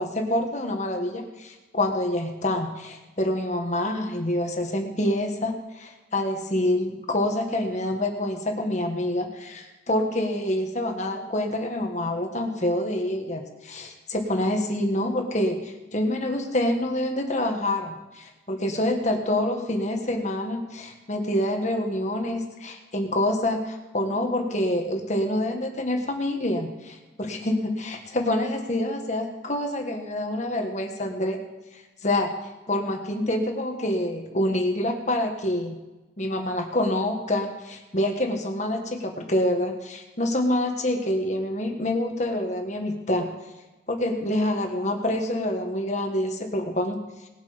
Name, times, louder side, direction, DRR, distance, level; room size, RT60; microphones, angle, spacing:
voice 1, 0.0-31.4 32.0-32.3 32.7-35.8 36.2-43.3 43.9-47.0, left 1 dB, 40° left, 3 dB, 1.6 m, -27 dB
19.5 x 8.3 x 5.2 m, 1.1 s
head